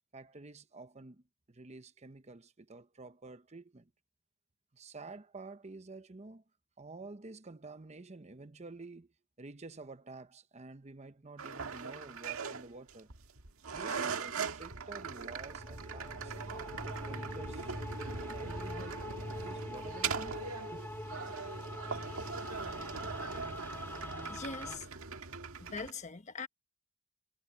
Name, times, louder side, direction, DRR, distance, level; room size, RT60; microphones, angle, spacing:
voice 1, 0.1-3.9 4.7-6.4 6.8-9.1 9.4-13.1 13.7-16.4 16.8-17.7 18.0-20.4 20.7-21.2, right 3 dB, 30° right, 0.8 m, -50 dB
sound 1, 11.4-25.9, right 5 dB, 85° right, 1.7 m, -41 dB
sound 2, 15.4-24.8, left 1 dB, 10° left, 2.3 m, -44 dB
voice 2, 24.3-24.9 25.6-26.5, left 4 dB, 35° left, 1.1 m, -42 dB
head